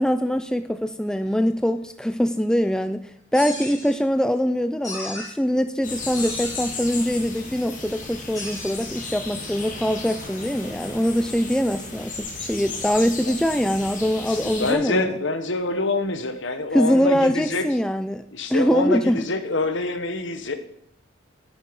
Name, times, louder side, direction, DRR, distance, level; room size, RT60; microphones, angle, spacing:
voice 1, 0.0-15.1 16.7-18.2 18.5-19.2, equal, 5° left, 10 dB, 0.3 m, -23 dB
sound 1, 3.3-3.9 4.8-5.3 6.1-6.8 8.3-8.7, left 2 dB, 20° left, 4.9 m, -34 dB
sound 2, 5.8-14.7, left 3 dB, 40° left, 2.7 m, -35 dB
voice 2, 14.3-17.7 18.3-20.6, left 2 dB, 60° left, 9 dB, 1.2 m, -26 dB
10.5 x 8.5 x 5.3 m, 0.71 s
head